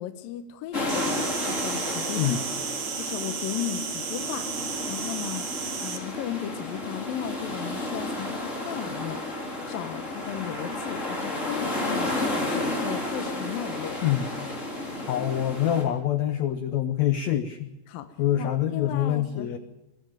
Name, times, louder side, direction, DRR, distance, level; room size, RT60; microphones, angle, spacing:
voice 1, 0.0-2.4 3.0-9.2 9.7-14.0 17.9-19.6, left 10 dB, 75° left, 9 dB, 2.6 m, -36 dB
sound 1, 0.7-15.8, left 2 dB, 20° left, 3.4 m, -32 dB
Insect, 0.9-6.0, right 7 dB, 65° right, 3.6 m, -33 dB
voice 2, 14.9-17.7 18.2-19.6, left 11 dB, 90° left, 10 dB, 1.5 m, -25 dB
22.5 x 13.5 x 8.8 m, 0.97 s
omnidirectional pair, 4.4 m